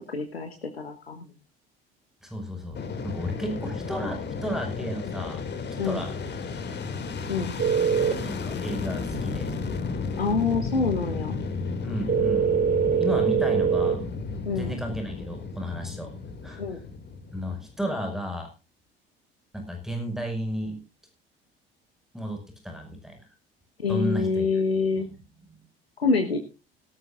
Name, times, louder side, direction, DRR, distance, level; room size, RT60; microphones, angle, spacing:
voice 1, 0.1-1.2 5.8-6.0 7.3-7.5 10.2-11.4 14.4-14.7 16.6-16.8 23.8-25.1 26.0-26.4, left 4 dB, 85° left, 6 dB, 1.3 m, -26 dB
voice 2, 2.2-5.4 5.8-6.1 7.9-9.6 11.8-12.5 12.9-14.1 14.6-16.1 16.4-16.8 17.3-18.5 19.5-20.8 22.1-23.2 23.9-24.6 25.0-25.6, equal, ahead, 4 dB, 5.8 m, -33 dB
Fixed-wing aircraft airplane, 2.7-17.9, left 4 dB, 35° left, 2.6 m, -33 dB
sound 1, 7.6-8.1 12.1-14.0, right 7 dB, 30° right, 2.3 m, -23 dB
17.5 x 15.0 x 2.6 m, 0.30 s
figure-of-eight pair, 55°, 30 cm